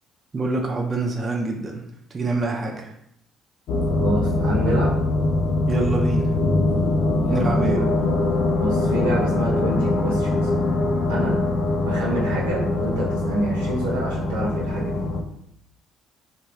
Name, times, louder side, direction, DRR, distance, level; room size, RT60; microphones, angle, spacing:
voice 1, 0.3-1.8 2.1-2.9 5.7-6.3 7.3-7.8, right 3 dB, 40° right, 1 dB, 0.4 m, -25 dB
sound 1, 3.7-15.2, left 2 dB, 65° left, 0.4 m, -22 dB
voice 2, 3.9-4.9 7.3-7.9 8.6-10.5 11.1-11.4 11.8-14.9, right 1 dB, 85° right, -4 dB, 0.7 m, -27 dB
2.4 x 2.2 x 3.1 m, 0.73 s
hypercardioid pair, 55°, 0 cm